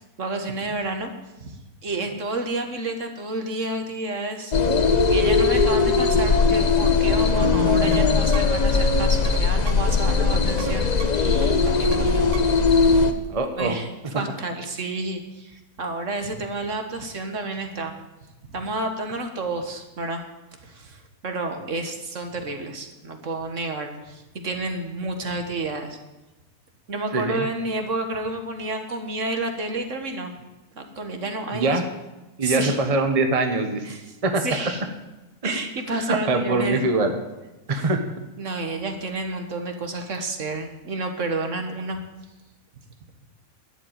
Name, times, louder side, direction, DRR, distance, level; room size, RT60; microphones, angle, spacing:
voice 1, 0.2-1.1 1.4-1.6 1.8-4.7 5.1-12.3 13.0-13.1 13.6-17.9 18.5-20.2 20.6-26.0 26.9-30.3 30.8-31.9 32.4-32.8 33.9-34.2 34.4-34.8 35.4-36.8 37.7-37.9 38.4-42.0, right 2 dB, 55° right, 5 dB, 1.8 m, -30 dB
sound 1, 4.5-13.1, left 4 dB, 35° left, 0.7 m, -19 dB
sound 2, 7.4-12.7, right 8 dB, 75° right, 1.3 m, -36 dB
voice 2, 11.8-12.1 13.3-13.8 14.1-14.2 27.1-27.5 31.5-31.8 32.4-34.0 34.2-34.7 35.4-35.6 35.9-37.2 37.7-38.1, right 2 dB, 25° right, 5 dB, 1.0 m, -23 dB
12.0 x 7.7 x 9.1 m, 1.1 s
omnidirectional pair, 1.6 m